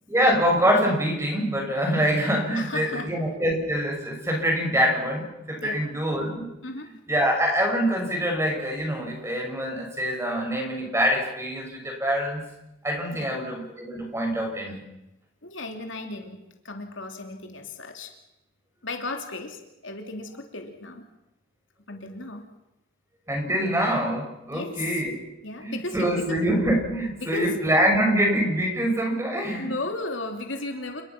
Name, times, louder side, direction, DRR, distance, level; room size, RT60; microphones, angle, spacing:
voice 1, 0.1-6.5 7.1-12.4 12.8-14.8 23.3-25.2 25.6-29.7, equal, 15° right, 1 dB, 6.3 m, -25 dB
voice 2, 2.5-3.1 5.6-5.8 6.6-6.9 13.1-13.3 15.4-16.4 16.6-18.1 18.8-21.0 21.9-22.5 24.5-25.0 25.4-26.4 27.1-27.6 29.6-31.0, left 2 dB, 70° left, 4 dB, 3.0 m, -35 dB
29.0 x 20.5 x 6.0 m, 0.91 s
head